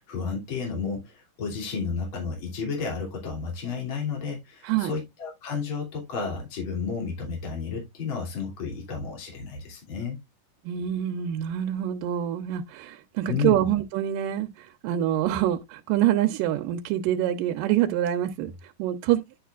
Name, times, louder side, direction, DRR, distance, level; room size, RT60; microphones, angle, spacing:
voice 1, 0.0-10.2 13.3-13.7, left 5 dB, 40° left, 3.5 m, -32 dB
voice 2, 10.7-14.5 14.8-18.5 18.8-19.2, right 12 dB, 80° right, 2.4 m, -25 dB
10.0 x 6.2 x 2.4 m
omnidirectional pair, 3.9 m